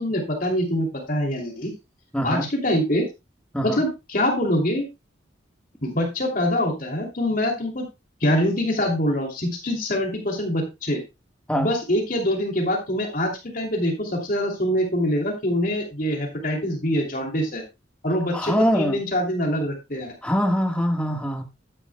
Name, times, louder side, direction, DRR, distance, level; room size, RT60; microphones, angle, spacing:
voice 1, 0.0-1.7 2.2-3.0 3.6-4.8 5.8-7.8 8.2-11.0 11.6-17.6 18.0-20.1, left 1 dB, 45° left, 1 dB, 2.8 m, -24 dB
voice 2, 2.1-2.5 3.5-3.8 11.5-11.7 18.3-19.0 20.2-21.4, equal, 5° left, 4 dB, 1.4 m, -23 dB
12.0 x 9.9 x 2.2 m, 0.25 s
head